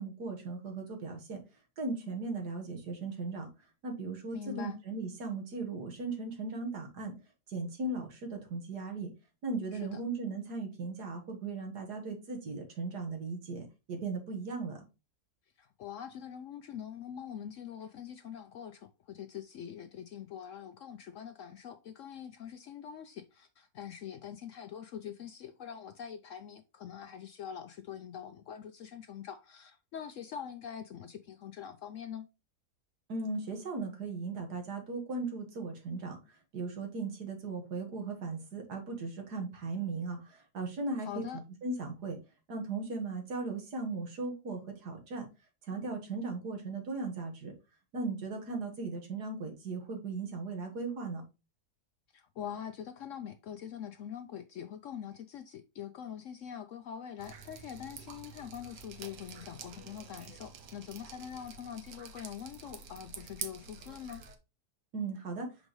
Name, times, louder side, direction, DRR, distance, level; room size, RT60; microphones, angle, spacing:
voice 1, 0.0-1.4 1.8-3.5 3.8-7.1 7.5-9.1 9.4-14.8 33.1-41.3 41.6-42.2 42.5-45.3 45.6-47.5 47.9-51.2 64.9-65.5, right 3 dB, 75° right, 2.1 m, -37 dB
voice 2, 4.3-4.8 9.7-10.0 15.6-32.3 41.0-41.4 52.1-64.2, left 9 dB, 70° left, 0.7 m, -44 dB
Drip, 57.2-64.4, right 6 dB, 90° right, 1.6 m, -48 dB
6.1 x 5.2 x 3.1 m
omnidirectional pair, 1.8 m